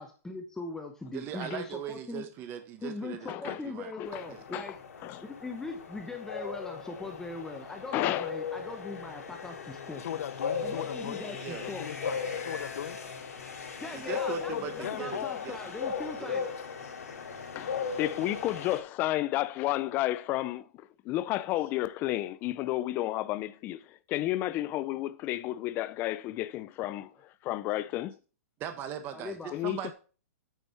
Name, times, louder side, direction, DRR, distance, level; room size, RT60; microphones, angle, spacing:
voice 1, 0.0-2.3 2.8-4.7 5.3-10.0 10.6-11.9 13.8-16.4 29.1-29.6, left 3 dB, 5° left, 0.8 m, -40 dB
voice 2, 1.1-3.9 4.3-4.4 11.4-11.7 13.9-15.6 16.2-16.5 28.6-29.9, right 9 dB, 25° right, 1.3 m, -40 dB
voice 3, 3.3-3.6 4.0-4.2 4.5-4.6 5.0-5.2 7.9-8.3 17.6-20.7 21.0-27.1 27.4-28.2 29.5-29.9, left 15 dB, 25° left, 0.4 m, -31 dB
sound 1, 4.1-18.8, left 6 dB, 85° left, 2.6 m, -37 dB
voice 4, 10.0-11.3 11.6-13.0 14.5-15.6 15.9-16.2, left 10 dB, 70° left, 0.6 m, -38 dB
9.0 x 6.0 x 4.4 m
hypercardioid pair, 155°, 8 cm